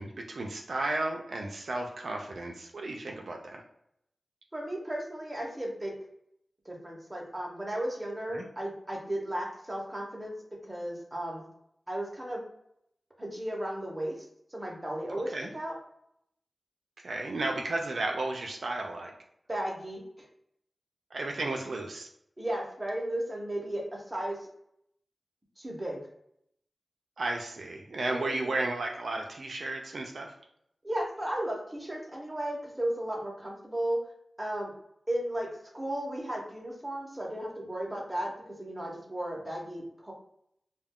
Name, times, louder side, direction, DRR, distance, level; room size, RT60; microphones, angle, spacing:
voice 1, 0.0-3.6 8.3-8.4 15.1-15.5 17.0-19.1 21.1-22.1 27.2-30.4, right 2 dB, 75° right, 1 dB, 0.4 m, -33 dB
voice 2, 4.5-5.9 6.6-10.3 10.7-11.4 11.9-12.4 13.2-14.2 14.5-15.7 19.5-20.3 22.4-24.4 25.6-26.0 28.1-28.6 30.8-34.0 34.4-34.7 35.1-35.5 35.7-40.1, right 1 dB, 15° right, -1 dB, 0.7 m, -35 dB
2.2 x 2.1 x 3.5 m, 0.74 s
wide cardioid pair, 105°, 0 cm